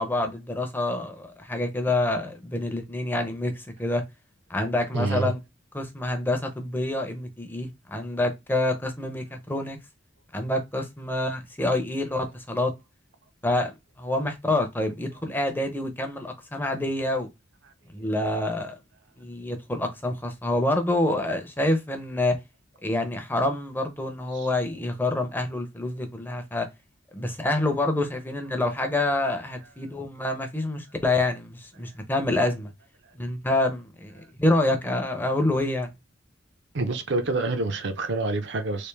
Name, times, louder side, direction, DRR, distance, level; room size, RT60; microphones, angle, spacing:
voice 1, 0.0-4.0 4.5-5.4 5.7-9.8 10.3-12.7 13.4-17.3 17.9-18.8 19.2-22.4 22.8-26.7 27.1-32.7 33.2-35.9, left 2 dB, 10° left, 0.5 m, -27 dB
voice 2, 4.9-5.3 24.3-24.5 36.7-38.9, right 3 dB, 60° right, 0.6 m, -27 dB
3.3 x 2.5 x 3.2 m
head